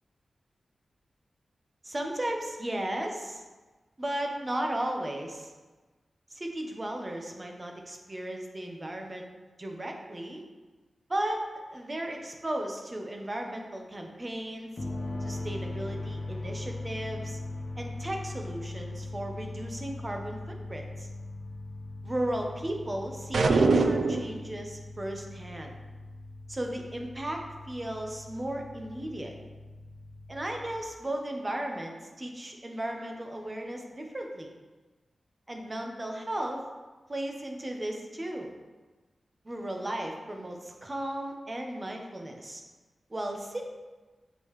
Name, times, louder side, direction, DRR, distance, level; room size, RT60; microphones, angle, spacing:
voice 1, 1.8-3.4 4.0-5.5 6.3-9.2 9.6-10.4 11.1-14.7 15.2-17.4 17.8-20.4 20.7-21.1 22.0-25.8 26.5-29.3 30.3-34.5 35.5-36.6 37.1-38.5 39.4-42.6 43.1-43.7, right 1 dB, 25° right, 2 dB, 0.9 m, -35 dB
sound 1, 14.8-30.8, left 2 dB, 60° left, 1.0 m, -40 dB
sound 2, 23.3-24.4, right 3 dB, 80° right, 0.4 m, -22 dB
7.6 x 5.2 x 3.2 m, 1.3 s
wide cardioid pair, 105°, 0 cm